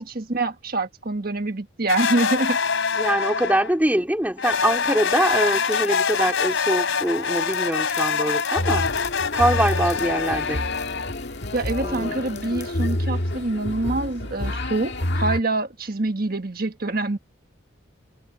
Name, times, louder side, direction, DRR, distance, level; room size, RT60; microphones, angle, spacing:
voice 1, 0.0-2.6 11.5-17.2, right 2 dB, 50° right, 1.5 m, -26 dB
sound 1, 1.9-3.8 4.4-11.1, left 5 dB, 75° left, 3.1 m, -25 dB
voice 2, 2.9-8.9 9.3-10.7 11.8-12.2, right 1 dB, 10° right, 2.3 m, -23 dB
sound 2, 5.5-13.0, left 11 dB, 35° left, 5.5 m, -46 dB
sound 3, 8.6-15.4, left 1 dB, 55° left, 1.9 m, -28 dB
head